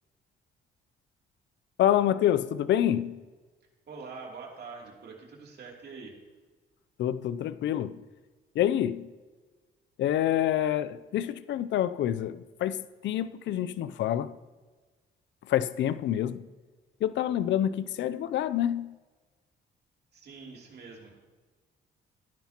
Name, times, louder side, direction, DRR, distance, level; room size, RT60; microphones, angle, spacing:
voice 1, 1.8-3.2 7.0-8.0 8.5-9.1 10.0-14.4 15.4-16.5 17.0-18.9, left 11 dB, 65° left, 0.5 m, -27 dB
voice 2, 3.9-6.1 20.1-21.3, right 4 dB, 55° right, 2.9 m, -45 dB
17.0 x 10.0 x 2.9 m
cardioid pair, 90°, 20 cm